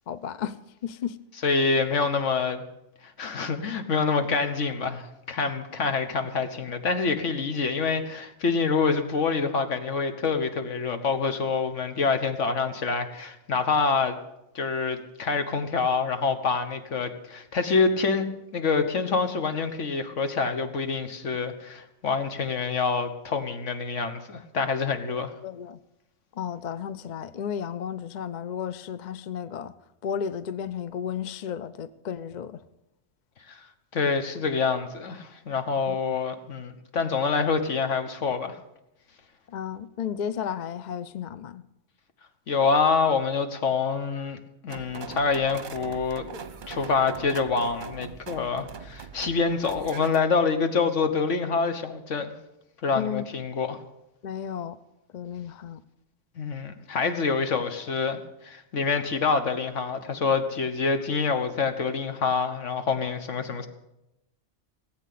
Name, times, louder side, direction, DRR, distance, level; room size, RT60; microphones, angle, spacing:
voice 1, 0.1-1.2 25.1-25.8 26.4-29.7 30.0-32.6 35.9-36.0 39.5-41.6 52.9-53.2 54.2-54.8 55.1-55.8, left 8 dB, 50° left, 14 dB, 0.6 m, -33 dB
voice 2, 1.4-2.6 3.0-14.2 14.5-25.3 33.5-33.6 33.9-38.6 42.5-44.4 44.6-46.3 46.7-52.3 52.8-53.8 56.4-63.7, left 5 dB, 75° left, 8 dB, 1.6 m, -26 dB
sound 1, 44.7-50.3, right 5 dB, 45° right, 0.9 m, -41 dB
18.0 x 8.1 x 8.4 m, 0.90 s
omnidirectional pair, 1.3 m